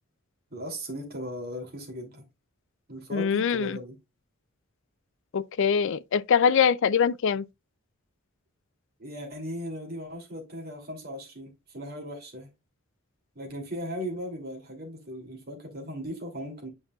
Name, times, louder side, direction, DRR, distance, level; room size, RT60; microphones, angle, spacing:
voice 1, 0.5-2.2 2.9-4.0 9.0-12.5 13.3-16.7, equal, 50° right, 2.8 m, -37 dB
voice 2, 3.1-3.8 5.3-7.4, left 7 dB, 65° left, 0.4 m, -23 dB
9.6 x 5.3 x 2.3 m
head